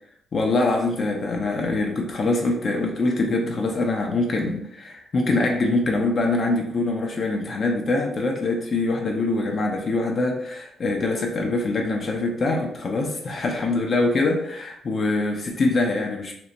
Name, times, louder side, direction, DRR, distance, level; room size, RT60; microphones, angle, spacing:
voice 1, 0.3-16.3, left 2 dB, 45° left, 2 dB, 0.4 m, -24 dB
2.8 x 2.1 x 2.5 m, 0.70 s
cardioid pair, 90°, 0 cm